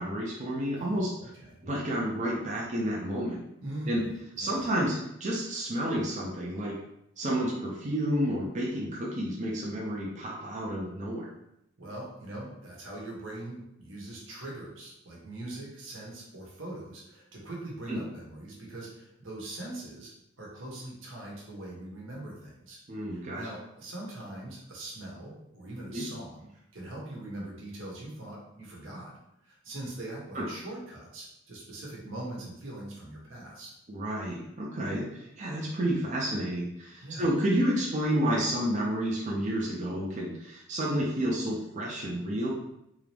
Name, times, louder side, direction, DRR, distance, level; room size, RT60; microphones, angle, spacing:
voice 1, 0.0-1.1 1.6-3.4 3.9-4.0 4.4-6.7 7.2-11.3 17.9-18.0 22.9-23.4 25.9-26.1 30.3-30.4 33.9-42.5, equal, 40° right, -4 dB, 0.6 m, -30 dB
voice 2, 0.7-1.6 3.6-4.1 4.4-4.6 11.8-20.1 20.4-22.8 23.1-26.5 26.7-33.7 37.0-37.4, right 1 dB, 80° right, -3 dB, 1.2 m, -42 dB
3.6 x 2.9 x 3.4 m, 0.82 s
head